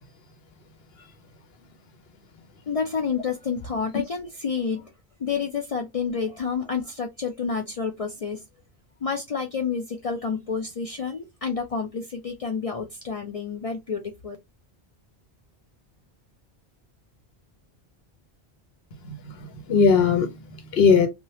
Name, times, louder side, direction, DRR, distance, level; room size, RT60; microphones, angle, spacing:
voice 1, 2.7-4.9 5.2-8.4 9.0-14.4, left 5 dB, 50° left, 0.4 m, -29 dB
voice 2, 19.0-21.1, left 5 dB, 75° left, 1.0 m, -20 dB
3.1 x 2.3 x 2.7 m
omnidirectional pair, 1.0 m